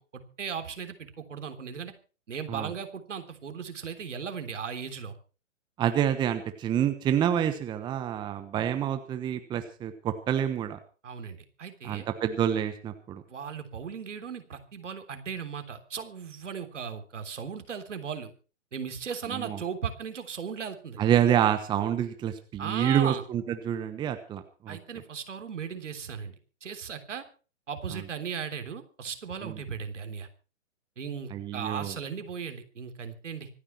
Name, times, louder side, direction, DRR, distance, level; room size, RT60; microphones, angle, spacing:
voice 1, 0.0-1.9 2.3-5.2 11.0-12.0 13.3-18.3 18.7-21.0 22.6-23.3 24.7-26.3 26.6-27.2 27.7-30.3 31.0-33.5, right 7 dB, 70° right, 8 dB, 3.5 m, -37 dB
voice 2, 5.8-10.8 11.8-13.2 19.3-19.6 21.0-24.8 29.4-29.6 31.3-31.9, right 10 dB, 10° right, 9 dB, 1.1 m, -27 dB
25.5 x 10.0 x 4.5 m, 0.36 s
hypercardioid pair, 140°, 38 cm